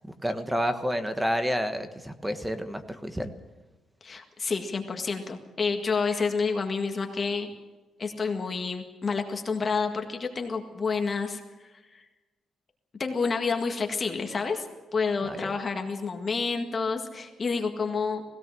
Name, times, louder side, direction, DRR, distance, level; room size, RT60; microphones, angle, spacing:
voice 1, 0.2-3.3 15.3-15.5, equal, 5° right, 8 dB, 1.3 m, -29 dB
voice 2, 4.0-7.5 8.0-12.0 13.0-14.7 14.9-18.2, left 4 dB, 30° left, 4 dB, 1.8 m, -29 dB
20.0 x 17.5 x 7.6 m, 1.2 s
cardioid pair, 155°, 0 cm